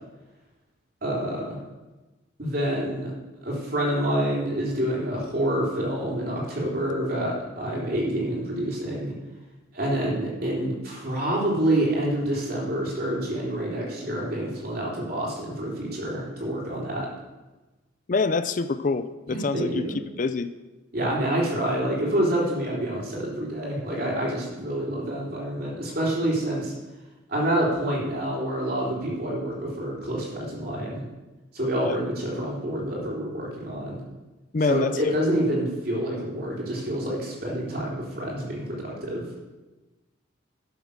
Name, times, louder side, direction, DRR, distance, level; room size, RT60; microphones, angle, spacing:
voice 1, 1.0-1.6 2.4-3.1 3.4-9.1 9.7-17.1 19.3-20.0 20.9-26.7 27.3-31.0 31.5-34.0 34.6-39.2, right 1 dB, 50° right, -4 dB, 3.6 m, -27 dB
voice 2, 18.1-19.8 20.2-20.5 31.8-32.0 34.5-35.2, left 4 dB, 40° left, 12 dB, 0.4 m, -26 dB
12.0 x 7.0 x 6.5 m, 1.1 s
head